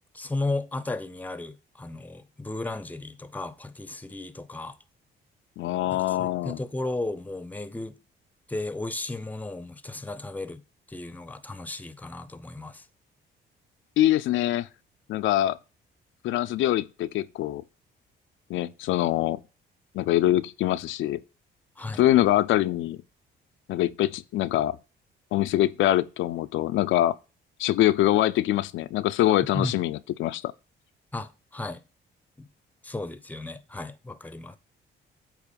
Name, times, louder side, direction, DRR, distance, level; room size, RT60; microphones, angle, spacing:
voice 1, 0.1-4.8 5.9-8.0 8.5-10.6 10.9-12.9 21.8-22.0 29.5-29.7 31.1-31.8 32.4-32.5 32.8-34.6, left 2 dB, 10° left, 0.6 m, -34 dB
voice 2, 5.6-6.6 14.0-14.7 15.1-15.6 16.2-17.6 18.5-19.4 19.9-21.2 22.0-23.0 23.7-24.8 25.3-27.1 27.6-30.5, left 14 dB, 80° left, 0.4 m, -24 dB
8.2 x 3.0 x 5.1 m
cardioid pair, 90°, 20 cm